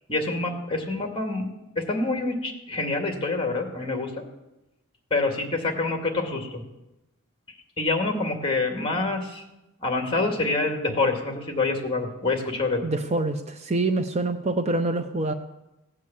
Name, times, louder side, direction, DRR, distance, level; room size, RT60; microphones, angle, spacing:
voice 1, 0.1-1.5 1.8-4.1 5.1-6.6 7.8-9.4 9.8-12.8, left 3 dB, 25° left, 3 dB, 2.2 m, -26 dB
voice 2, 12.8-15.3, right 2 dB, 30° right, 7 dB, 0.6 m, -26 dB
17.0 x 8.4 x 7.4 m, 0.96 s
head